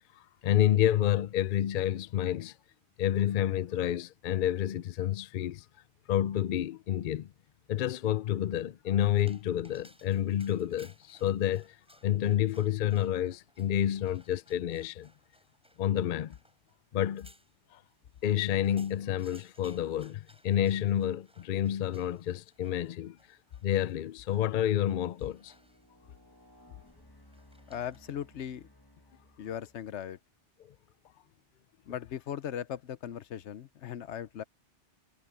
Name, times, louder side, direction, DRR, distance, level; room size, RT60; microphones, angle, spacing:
voice 1, 0.2-2.5 3.0-5.6 6.1-7.3 7.7-11.8 12.0-15.1 15.8-16.4 16.9-17.3 17.7-17.8 18.2-23.2 23.6-25.5, left 11 dB, 55° left, 0.6 m, -29 dB
Dog, 9.1-28.2, equal, 5° right, 7.3 m, -63 dB
sound 1, 22.5-22.7 23.3-30.2, left 1 dB, 20° left, 1.5 m, -61 dB
voice 2, 27.7-28.7 29.4-30.2 31.9-34.4, left 9 dB, 75° left, 1.0 m, -38 dB
omnidirectional pair, 1.2 m